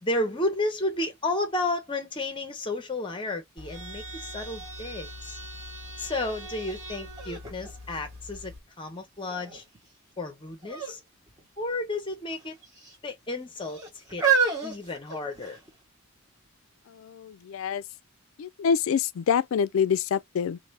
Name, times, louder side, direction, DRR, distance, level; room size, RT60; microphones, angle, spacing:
voice 1, 0.0-5.4 6.0-9.6 10.2-11.0 11.6-12.6 13.0-14.3 14.6-15.6, left 2 dB, 25° left, 0.8 m, -32 dB
sound 1, 3.6-8.6, equal, 65° right, 1.5 m, -42 dB
sound 2, 6.6-6.7 7.2-8.7 9.3-9.8 10.6-11.0 11.3-11.4 12.3-12.9 13.6-15.7 16.4-16.5, right 6 dB, 15° right, 1.3 m, -29 dB
voice 2, 16.9-17.8 18.4-20.6, left 7 dB, 65° left, 0.3 m, -26 dB
2.8 x 2.6 x 3.3 m
head